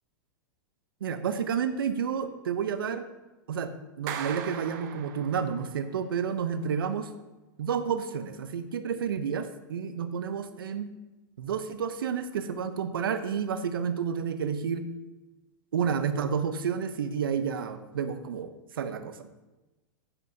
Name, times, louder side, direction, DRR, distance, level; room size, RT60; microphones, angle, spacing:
voice 1, 1.0-3.0 3.5-3.7 4.0-7.1 7.6-10.9 11.4-14.9 15.7-19.3, right 7 dB, 90° right, 11 dB, 0.6 m, -30 dB
Clapping, 4.1-5.7, right 9 dB, 55° right, 0.8 m, -38 dB
9.8 x 7.8 x 2.7 m, 1.1 s
hypercardioid pair, 125°, 11 cm